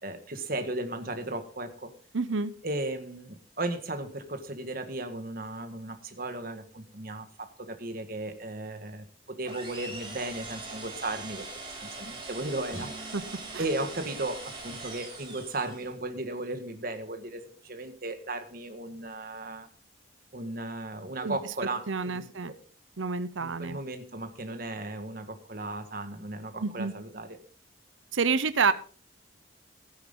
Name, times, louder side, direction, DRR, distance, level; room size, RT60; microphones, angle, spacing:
voice 1, 0.0-1.9 2.6-11.5 11.8-13.2 13.6-19.7 20.3-22.6 23.4-27.4, right 2 dB, 50° right, 7 dB, 1.8 m, -36 dB
voice 2, 2.1-2.5 13.1-13.2 13.5-13.6 21.2-21.4 21.9-22.5 23.0-23.8 26.6-26.9 28.1-28.7, right 5 dB, 85° right, 14 dB, 0.8 m, -28 dB
sound 1, 9.4-16.0, right 3 dB, 25° right, 5.3 m, -42 dB
sound 2, 12.7-15.1, right 1 dB, 40° left, 5.7 m, -47 dB
16.5 x 9.8 x 3.8 m, 0.40 s
head